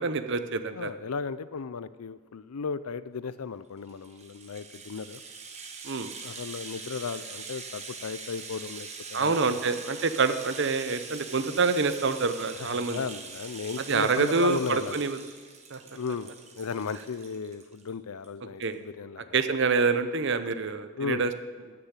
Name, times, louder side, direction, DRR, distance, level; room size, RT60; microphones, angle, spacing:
voice 1, 0.0-0.9 5.8-6.1 9.1-13.0 13.9-15.2 15.7-15.8 18.6-18.8 19.3-21.3, right 4 dB, 55° right, 10 dB, 0.7 m, -26 dB
voice 2, 0.7-5.2 6.2-9.6 12.6-15.0 15.9-19.3 20.9-21.2, left 5 dB, 85° left, 15 dB, 0.5 m, -35 dB
Rattle (instrument), 3.8-17.9 18.2-18.3 18.6-18.7, right 5 dB, 30° right, 1.2 m, -43 dB
13.0 x 6.9 x 8.2 m, 1.5 s
head